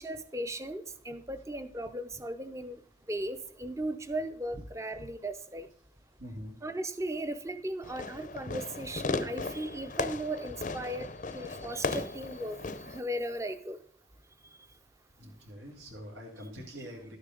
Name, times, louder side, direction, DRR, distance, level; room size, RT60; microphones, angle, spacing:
voice 1, 0.0-2.8 3.1-5.7 6.6-11.1 11.3-12.6 12.9-13.8 16.8-16.9, right 1 dB, 15° right, 10 dB, 0.6 m, -37 dB
voice 2, 6.2-6.5 15.2-17.2, equal, 85° right, -1 dB, 2.3 m, -44 dB
Fireworks, 7.8-13.0, left 3 dB, 45° left, 0.5 m, -36 dB
12.0 x 6.6 x 3.8 m, 0.65 s
head